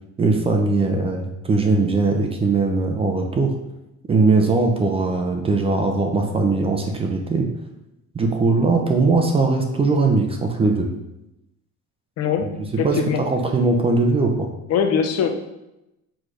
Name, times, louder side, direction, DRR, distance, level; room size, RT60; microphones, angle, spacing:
voice 1, 0.2-3.5 4.1-7.5 8.1-10.9 12.4-12.5 12.8-13.0 13.3-14.5, right 3 dB, 20° right, 3 dB, 0.5 m, -20 dB
voice 2, 12.2-13.2 14.7-15.3, left 7 dB, 55° left, 5 dB, 0.7 m, -22 dB
6.3 x 3.2 x 4.9 m, 0.92 s
cardioid pair, 170°, 30 cm